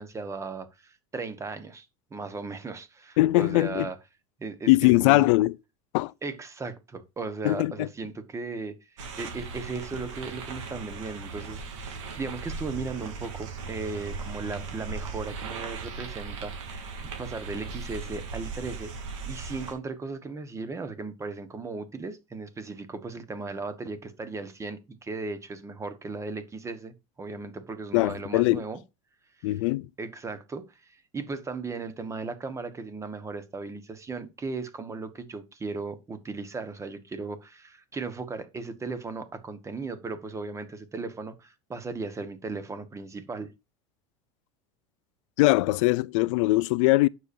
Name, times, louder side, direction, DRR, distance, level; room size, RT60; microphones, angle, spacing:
voice 1, 0.0-4.0 4.4-5.3 6.2-8.7 9.2-18.9 19.3-28.8 29.4-29.5 30.0-43.5, right 4 dB, 20° right, 1.3 m, -37 dB
voice 2, 3.2-3.9 4.7-5.5 5.9-6.1 7.4-7.9 27.9-28.6 29.4-29.9 45.4-47.1, left 20 dB, 75° left, 0.4 m, -21 dB
sound 1, 9.0-19.7, right 4 dB, 85° right, 3.3 m, -38 dB
9.4 x 6.9 x 2.7 m
supercardioid pair, 125°, 16 cm